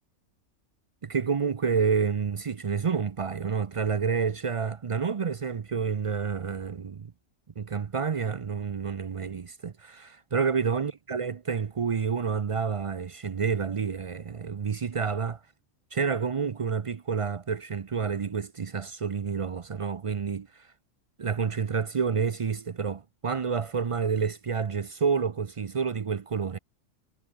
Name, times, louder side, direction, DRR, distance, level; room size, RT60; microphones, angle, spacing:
voice 1, 1.0-7.1 7.6-15.4 15.9-20.7 21.2-26.6, right 6 dB, 50° right, 0.3 m, -29 dB
omnidirectional pair, 1.3 m